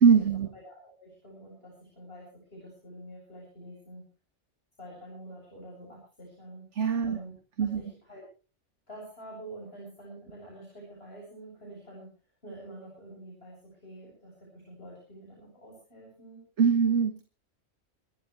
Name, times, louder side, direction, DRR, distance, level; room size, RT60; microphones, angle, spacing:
voice 1, 0.0-0.5 6.7-7.2 7.6-7.8 16.6-17.2, right 6 dB, 70° right, 8 dB, 1.7 m, -22 dB
voice 2, 0.5-4.1 4.8-6.7 7.0-7.3 7.6-8.2 8.9-12.1 12.4-16.4, right 1 dB, 55° left, -3 dB, 8.3 m, -47 dB
27.0 x 13.0 x 3.3 m, 0.36 s
omnidirectional pair, 1.3 m